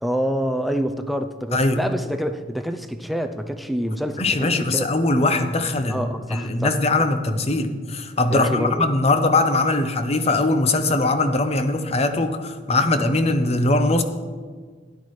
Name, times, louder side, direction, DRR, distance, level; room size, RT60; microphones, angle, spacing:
voice 1, 0.0-4.9 5.9-6.8 8.3-8.9, equal, ahead, 7 dB, 0.5 m, -26 dB
voice 2, 1.5-1.8 4.2-14.0, left 2 dB, 35° left, 8 dB, 0.7 m, -21 dB
12.5 x 10.5 x 3.2 m, 1.5 s
head